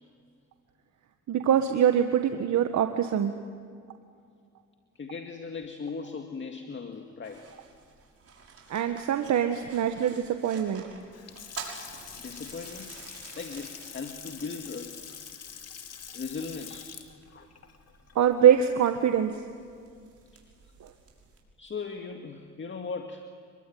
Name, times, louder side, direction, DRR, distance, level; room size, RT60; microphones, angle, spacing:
voice 1, 1.3-3.3 8.7-10.8 18.1-19.4 20.8-20.9, right 9 dB, 65° right, 7 dB, 1.5 m, -24 dB
voice 2, 4.9-7.5 12.2-12.9 13.4-15.0 16.1-16.9 17.3-17.5 20.3-20.4 21.6-23.2, left 5 dB, 40° left, 5 dB, 2.2 m, -38 dB
sound 1, 7.2-21.4, right 5 dB, 50° right, 6.2 m, -49 dB
Water tap faucet / Sink (filling or washing) / Splash splatter, 11.0-19.1, left 7 dB, 55° left, 2.6 m, -45 dB
27.0 x 22.5 x 9.4 m, 2.3 s
cardioid pair, 90°, 30 cm